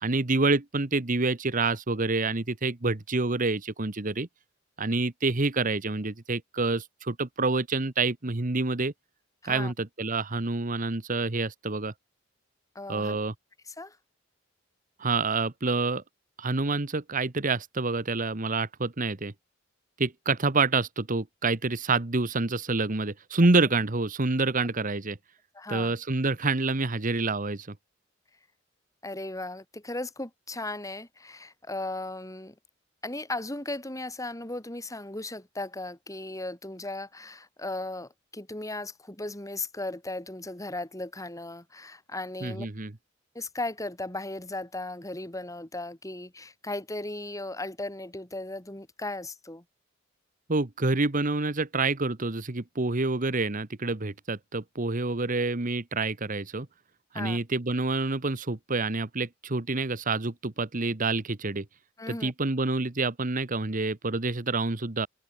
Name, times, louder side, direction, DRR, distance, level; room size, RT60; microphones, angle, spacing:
voice 1, 0.0-4.3 4.8-8.9 9.4-11.9 12.9-13.3 15.0-16.0 16.4-19.3 20.0-25.2 25.7-27.7 42.4-42.9 50.5-56.7 57.1-61.6 62.1-65.1, right 3 dB, 40° right, 1.3 m, -27 dB
voice 2, 12.7-13.2 13.7-14.0 25.5-25.9 29.0-32.5 33.0-42.7 43.3-49.6 57.1-57.4 62.0-62.3, left 2 dB, 15° left, 3.0 m, -36 dB
head